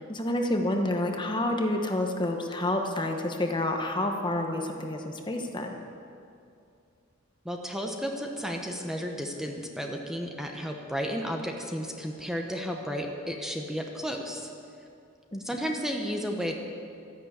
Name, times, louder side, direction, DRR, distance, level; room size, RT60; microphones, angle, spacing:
voice 1, 0.0-5.7 15.3-15.4, left 1 dB, 25° left, 4 dB, 1.1 m, -29 dB
voice 2, 7.4-14.5 15.4-16.6, equal, ahead, 2 dB, 1.0 m, -33 dB
13.0 x 11.0 x 8.2 m, 2.5 s
head